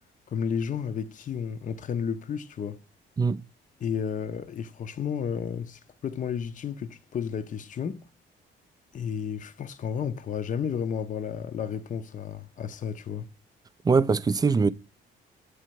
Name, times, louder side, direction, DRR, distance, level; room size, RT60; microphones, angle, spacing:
voice 1, 0.3-2.8 3.8-8.0 8.9-13.3, left 7 dB, 40° left, 0.6 m, -32 dB
voice 2, 13.8-14.7, right 4 dB, 20° right, 0.3 m, -22 dB
7.8 x 3.3 x 4.6 m
cardioid pair, 90°, 20 cm